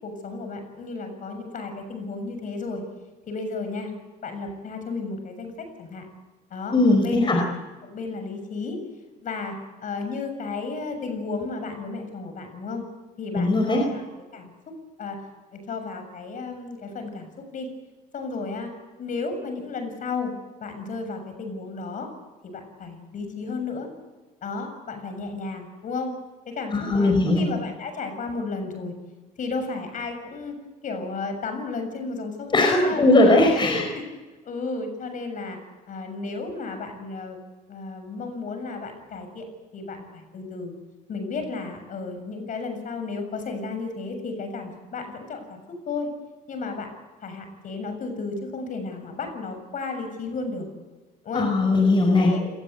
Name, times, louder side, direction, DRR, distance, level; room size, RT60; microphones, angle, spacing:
voice 1, 0.0-2.8 3.3-3.9 4.2-6.1 6.5-7.5 7.8-8.8 9.2-12.8 13.2-14.0 14.3-14.5 15.0-15.2 15.5-17.7 18.1-18.7 19.0-20.3 20.6-22.1 22.4-23.9 24.4-26.1 26.5-28.9 29.4-30.6 30.8-33.1 33.5-34.1 34.5-35.6 35.9-37.4 37.7-39.5 39.7-40.7 41.1-45.6 45.9-46.1 46.5-46.9 47.2-50.7 51.2-51.5 52.2-52.5, left 4 dB, 50° left, 7 dB, 7.1 m, -33 dB
voice 2, 6.7-7.4 13.4-13.8 26.7-27.4 32.5-33.8 51.3-52.3, left 2 dB, 30° left, 2 dB, 4.9 m, -19 dB
27.5 x 19.5 x 8.1 m, 1.2 s
cardioid pair, 110°, 17 cm